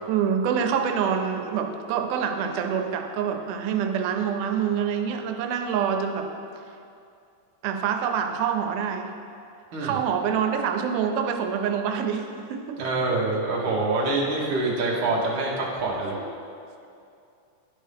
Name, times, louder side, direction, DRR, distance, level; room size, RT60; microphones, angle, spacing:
voice 1, 0.1-6.3 7.6-9.1 9.8-12.9 16.2-16.3, right 7 dB, 90° right, 4 dB, 2.1 m, -26 dB
voice 2, 12.8-16.2, right 2 dB, 55° right, -4 dB, 1.5 m, -25 dB
11.0 x 5.4 x 3.4 m, 2.5 s
omnidirectional pair, 3.6 m